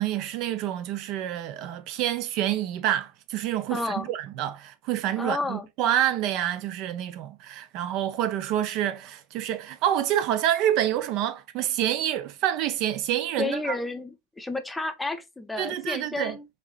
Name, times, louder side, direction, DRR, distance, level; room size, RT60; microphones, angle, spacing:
voice 1, 0.0-13.8 15.6-16.4, right 11 dB, 40° right, 0.4 m, -27 dB
voice 2, 3.7-4.1 5.2-5.7 13.4-16.5, left 3 dB, 5° left, 0.6 m, -31 dB
5.2 x 2.8 x 2.3 m
figure-of-eight pair, 90°, 0 cm